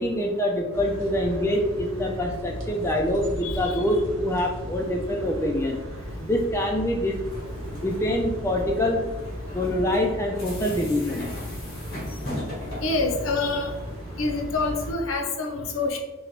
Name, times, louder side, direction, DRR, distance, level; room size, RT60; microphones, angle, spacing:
voice 1, 0.0-5.8 6.2-7.2 7.8-9.0 9.5-11.3, left 1 dB, 15° left, 1 dB, 0.3 m, -25 dB
sound 1, 0.7-14.9, equal, 80° right, 1.0 m, -36 dB
voice 2, 3.4-3.8 12.8-13.7 14.2-16.0, left 3 dB, 80° left, 4 dB, 0.6 m, -27 dB
sound 2, 7.2-14.9, left 1 dB, 50° left, 1.5 m, -39 dB
3.8 x 2.9 x 3.2 m, 1.1 s
head